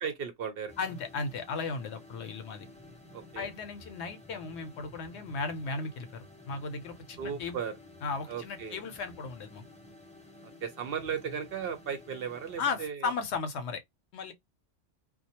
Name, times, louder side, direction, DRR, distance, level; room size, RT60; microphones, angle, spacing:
voice 1, 0.0-0.7 3.1-3.5 7.2-7.8 8.3-8.8 10.6-13.1, right 7 dB, 60° right, 0.7 m, -36 dB
sound 1, 0.7-12.9, left 2 dB, 10° left, 0.4 m, -52 dB
voice 2, 0.8-2.7 3.4-7.6 8.0-9.6 12.6-13.8 14.1-14.3, left 4 dB, 70° left, 0.8 m, -35 dB
2.4 x 2.2 x 2.7 m
omnidirectional pair, 1.2 m